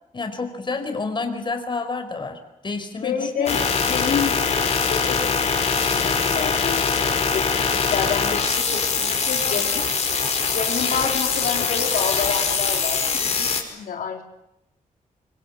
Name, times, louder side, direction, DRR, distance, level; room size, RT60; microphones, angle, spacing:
voice 1, 0.1-3.6, left 3 dB, 35° left, 6 dB, 4.7 m, -29 dB
voice 2, 3.0-9.8 10.5-14.2, left 6 dB, 80° left, 2 dB, 3.5 m, -29 dB
sound 1, 3.5-13.6, left 5 dB, 50° left, 5.3 m, -22 dB
25.0 x 25.0 x 8.8 m, 0.85 s
cardioid pair, 115°, 15 cm